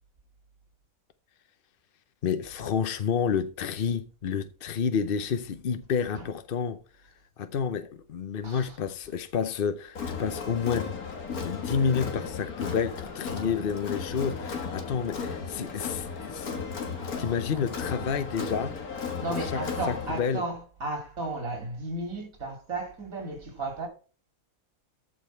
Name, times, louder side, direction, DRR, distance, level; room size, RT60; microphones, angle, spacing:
voice 1, 2.2-6.8 7.4-11.0 11.4-16.6 17.2-18.8 19.3-20.4, left 6 dB, 50° left, 0.7 m, -30 dB
voice 2, 8.4-8.8 17.4-17.7 18.3-18.4 19.2-23.9, right 2 dB, 65° right, 3.0 m, -34 dB
Crowd, 10.0-20.2, left 5 dB, 80° left, 2.2 m, -35 dB
14.0 x 5.2 x 4.5 m
omnidirectional pair, 1.5 m